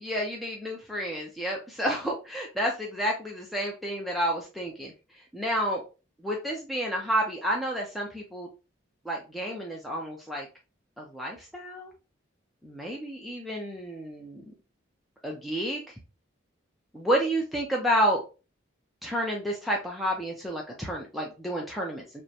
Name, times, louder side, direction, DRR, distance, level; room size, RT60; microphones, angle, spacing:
voice 1, 0.0-4.9 5.3-5.8 6.2-8.5 9.1-10.5 11.0-11.9 12.6-14.4 15.2-15.8 16.9-18.2 19.0-22.2, equal, ahead, -2 dB, 0.5 m, -30 dB
5.0 x 2.1 x 2.8 m, 0.31 s
head